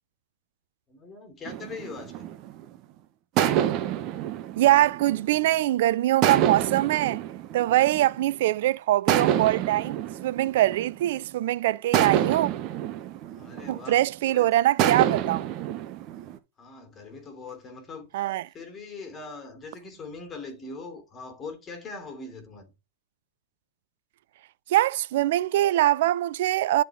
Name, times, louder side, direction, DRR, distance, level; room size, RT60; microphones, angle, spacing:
voice 1, 0.9-2.3 8.6-8.7 13.3-14.6 16.6-18.1 18.5-22.7, left 4 dB, 20° left, 2.9 m, -41 dB
sound 1, 1.5-2.8 3.4-5.6 6.2-8.4 9.1-11.3 11.9-14.2 14.8-16.4, right 11 dB, 40° right, 0.8 m, -27 dB
voice 2, 4.6-7.2 7.5-12.5 13.7-15.5 18.1-18.4 24.7-26.8, right 14 dB, 55° right, 0.3 m, -23 dB
10.5 x 4.3 x 3.5 m
figure-of-eight pair, 100°, 0 cm